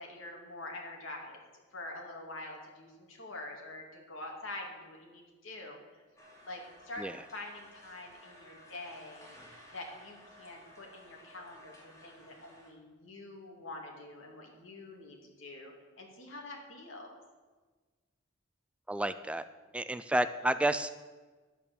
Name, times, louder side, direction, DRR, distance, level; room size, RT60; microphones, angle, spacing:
voice 1, 0.0-1.4 1.7-5.8 6.4-7.1 7.3-9.3 9.7-17.1, left 2 dB, 80° left, 1 dB, 2.6 m, -45 dB
sound 1, 6.2-12.7, left 1 dB, 15° left, 2.5 m, -56 dB
voice 2, 18.9-19.4 19.7-21.1, right 1 dB, 5° right, 12 dB, 0.3 m, -31 dB
10.5 x 8.7 x 6.9 m, 1.3 s
head